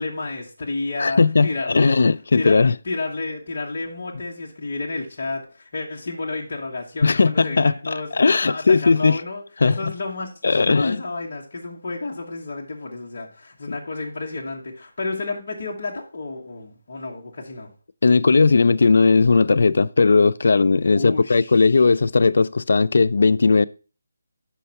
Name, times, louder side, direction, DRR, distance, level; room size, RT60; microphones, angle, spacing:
voice 1, 0.0-1.9 2.3-8.1 8.4-17.7 20.9-21.8, left 3 dB, 35° left, 1.2 m, -31 dB
voice 2, 1.0-2.7 7.0-7.7 8.1-9.2 9.6-9.8 10.4-11.0 18.0-23.7, left 4 dB, 50° left, 0.3 m, -17 dB
5.6 x 5.3 x 5.6 m
hypercardioid pair, 175°, 0 cm